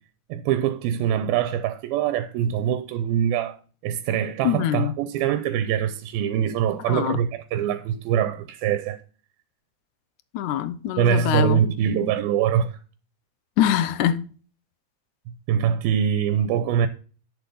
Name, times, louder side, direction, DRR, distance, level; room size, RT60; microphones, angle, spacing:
voice 1, 0.3-3.6 3.8-9.0 11.0-12.8 15.3-16.9, right 9 dB, 85° right, 2.6 m, -23 dB
voice 2, 4.4-4.9 6.9-7.2 10.3-11.6 13.6-14.2, left 11 dB, 75° left, 1.8 m, -23 dB
10.5 x 7.0 x 5.4 m
omnidirectional pair, 4.2 m